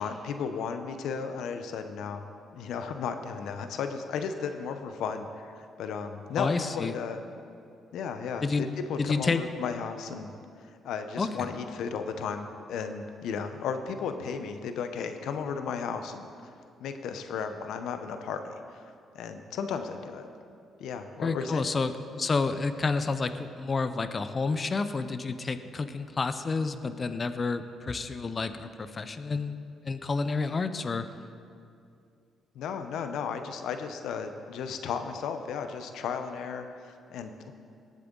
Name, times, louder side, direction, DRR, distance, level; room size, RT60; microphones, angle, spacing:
voice 1, 0.0-2.3 2.5-7.2 7.9-10.3 10.6-16.3 16.8-18.4 19.1-20.3 20.8-21.7 32.5-37.5, left 6 dB, 80° left, 8 dB, 0.8 m, -34 dB
voice 2, 6.4-6.9 8.4-8.6 9.0-9.4 11.2-11.3 21.2-29.6 29.8-31.1, left 4 dB, 35° left, 11 dB, 0.6 m, -29 dB
18.5 x 7.5 x 3.9 m, 2.4 s
cardioid pair, 90°, 0 cm